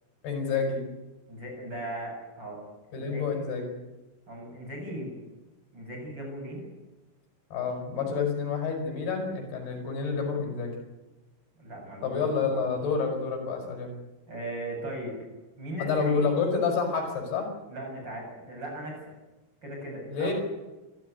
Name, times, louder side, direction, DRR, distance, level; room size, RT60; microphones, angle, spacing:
voice 1, 0.2-0.8 2.9-3.8 7.5-10.8 12.0-13.9 15.8-17.5 20.1-20.3, left 5 dB, 70° left, 2 dB, 7.2 m, -28 dB
voice 2, 1.3-2.6 2.9-3.4 4.3-5.1 5.7-6.7 11.6-12.7 14.3-15.2 15.6-16.2 17.7-19.1 19.6-20.3, right 1 dB, 25° right, 1 dB, 8.5 m, -38 dB
27.5 x 14.5 x 9.6 m, 1.1 s
omnidirectional pair, 4.7 m